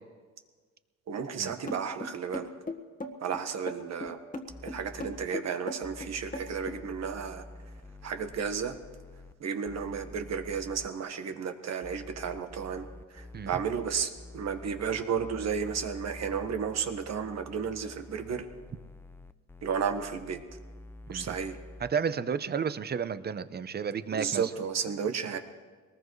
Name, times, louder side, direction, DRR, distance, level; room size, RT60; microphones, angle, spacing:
voice 1, 1.1-2.5 3.2-4.2 4.6-7.4 8.0-8.8 9.4-18.5 19.6-20.4 21.1-21.6 24.1-25.4, right 6 dB, 60° right, 6 dB, 1.4 m, -33 dB
sound 1, 1.7-6.8, left 2 dB, 25° left, 1.6 m, -38 dB
sound 2, 4.1-4.2 4.5-5.3 5.8-9.3 9.6-10.9 11.8-21.9, left 2 dB, 10° left, 0.5 m, -48 dB
voice 2, 21.9-24.4, right 6 dB, 35° right, 13 dB, 0.7 m, -32 dB
22.0 x 19.5 x 3.2 m, 1.5 s
cardioid pair, 90°, 30 cm